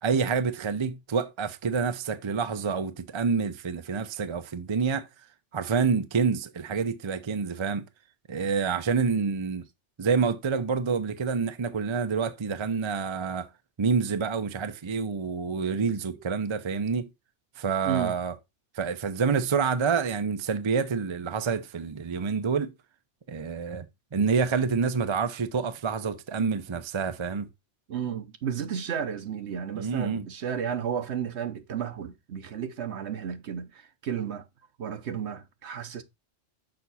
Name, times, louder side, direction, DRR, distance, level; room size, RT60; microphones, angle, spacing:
voice 1, 0.0-5.1 5.5-7.8 8.3-9.6 10.0-13.5 13.8-17.1 17.6-18.3 18.7-22.7 23.3-23.9 24.1-27.5 29.7-30.2, right 5 dB, 35° right, 0.5 m, -27 dB
voice 2, 17.8-18.1 27.9-34.4 34.8-36.0, right 8 dB, 65° right, 1.1 m, -33 dB
6.4 x 5.7 x 4.1 m
omnidirectional pair, 1.3 m